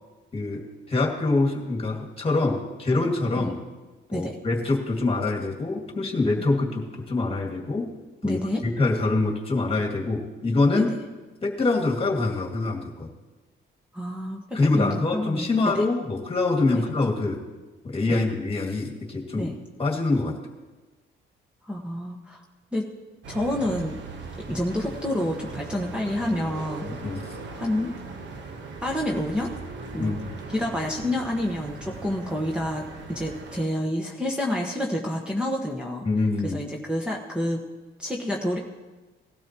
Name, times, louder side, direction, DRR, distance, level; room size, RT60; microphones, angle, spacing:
voice 1, 0.3-3.6 4.1-7.9 8.2-10.9 11.4-13.1 14.5-17.4 17.8-19.5 19.8-20.4 26.9-27.3 30.0-30.4 36.0-36.6, left 3 dB, 30° left, 0 dB, 2.2 m, -25 dB
voice 2, 8.2-8.6 10.8-10.9 13.9-15.8 16.7-16.8 18.1-18.2 19.3-19.5 21.6-22.4 22.7-22.8 23.3-24.0 24.5-26.9 27.5-27.9 28.8-29.5 29.9-30.1 30.5-36.1 36.4-37.6 38.0-38.6, left 1 dB, 5° right, -1 dB, 1.3 m, -28 dB
sound 1, 23.2-33.6, right 3 dB, 65° right, 1.3 m, -39 dB
18.5 x 12.5 x 3.0 m, 1.2 s
cardioid pair, 90°, 20 cm